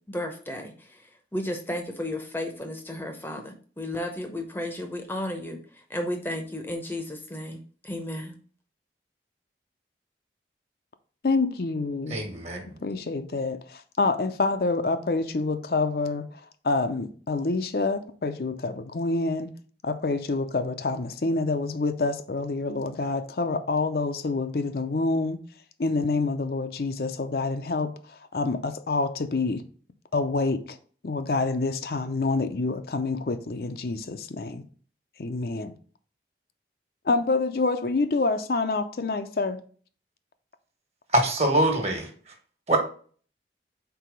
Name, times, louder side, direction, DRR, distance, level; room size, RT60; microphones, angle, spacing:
voice 1, 0.1-1.0 1.3-5.6 5.9-8.3, left 1 dB, 10° left, 0.7 m, -33 dB
voice 2, 11.2-12.2 12.8-19.5 19.8-25.4 25.8-29.6 30.1-30.8 31.0-34.6 35.2-35.7 37.0-39.6, left 3 dB, 60° left, 0.5 m, -27 dB
voice 3, 12.1-12.7 41.1-42.1 42.7-42.8, right 1 dB, 35° right, 1.5 m, -23 dB
4.7 x 4.1 x 5.2 m
head